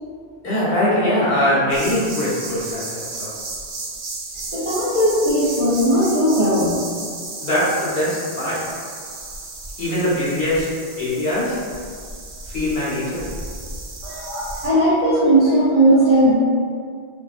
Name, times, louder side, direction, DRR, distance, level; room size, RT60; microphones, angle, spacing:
voice 1, 0.4-3.3 7.4-8.7 9.8-11.6 12.5-13.3, left 1 dB, 65° left, -8 dB, 0.9 m, -22 dB
sound 1, 1.7-14.7, right 3 dB, 85° right, 0.8 m, -34 dB
voice 2, 4.5-6.8 14.0-16.3, right 1 dB, 40° right, -12 dB, 0.5 m, -17 dB
2.5 x 2.3 x 2.3 m, 2.1 s
omnidirectional pair, 1.1 m